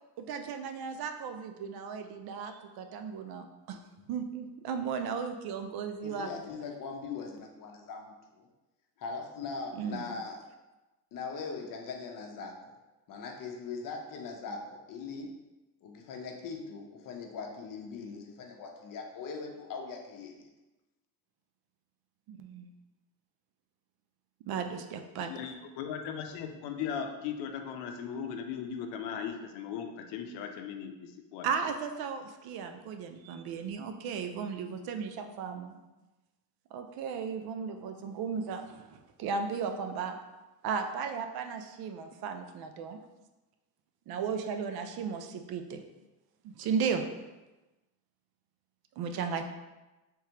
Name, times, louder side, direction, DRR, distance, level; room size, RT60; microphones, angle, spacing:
voice 1, 0.2-3.8 4.1-6.3 9.7-10.0 22.3-22.7 24.5-25.3 31.4-35.9 36.7-40.2 40.6-43.0 44.1-45.8 46.4-47.0 49.0-49.4, right 6 dB, 65° right, 6 dB, 0.5 m, -35 dB
voice 2, 6.0-8.5 9.0-10.4 11.1-12.8 13.1-15.3 15.8-20.5, left 4 dB, 50° left, 2 dB, 0.7 m, -41 dB
voice 3, 25.2-31.5, left 7 dB, 85° left, 6 dB, 0.6 m, -38 dB
3.5 x 3.2 x 2.9 m, 1.1 s
cardioid pair, 105°, 41 cm